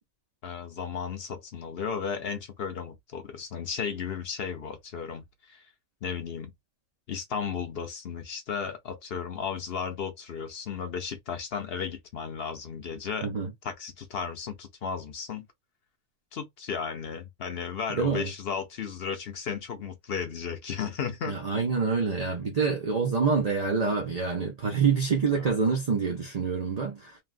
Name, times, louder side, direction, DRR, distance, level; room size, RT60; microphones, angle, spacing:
voice 1, 0.4-5.6 6.0-6.5 7.1-13.3 13.6-15.5 16.3-21.4 25.3-25.5, left 6 dB, 55° left, 0.8 m, -34 dB
voice 2, 17.9-18.3 21.2-27.1, right 5 dB, 35° right, 0.6 m, -26 dB
3.2 x 2.4 x 2.4 m
omnidirectional pair, 1.5 m